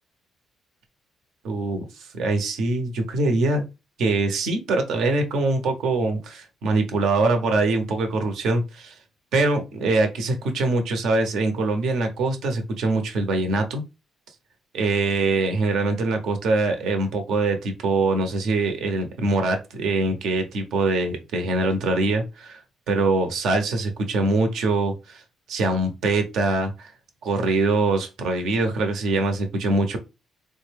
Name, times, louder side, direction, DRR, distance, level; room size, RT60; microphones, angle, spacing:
voice 1, 1.4-1.8 2.1-3.6 4.0-9.0 9.3-13.8 14.7-22.6 22.9-25.2 25.5-26.9 27.2-30.0, right 2 dB, 80° right, 0.9 m, -23 dB
3.7 x 2.2 x 3.3 m
cardioid pair, 90°, 0 cm